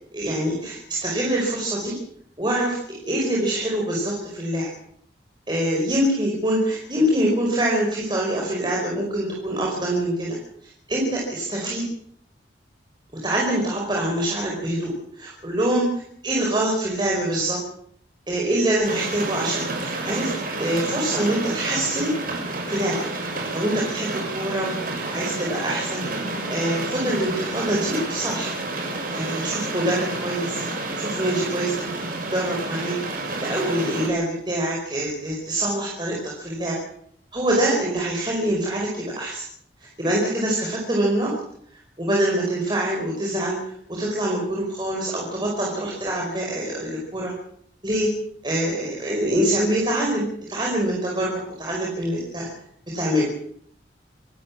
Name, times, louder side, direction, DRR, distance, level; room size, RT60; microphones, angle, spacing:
voice 1, 0.1-2.0 2.4-4.7 5.5-10.4 10.9-11.9 13.2-15.9 16.2-17.6 18.3-20.3 20.6-22.1 22.7-23.1 23.5-26.0 26.5-28.5 29.1-30.6 30.9-31.7 32.3-33.0 33.4-36.8 37.3-39.4 39.8-41.3 42.0-43.6 43.9-47.3 47.8-48.1 48.4-52.5 52.9-53.2, right 1 dB, 25° right, -2 dB, 5.2 m, -25 dB
sound 1, 18.8-34.1, right 2 dB, 50° right, 6.1 m, -30 dB
26.5 x 13.5 x 7.4 m, 0.65 s
head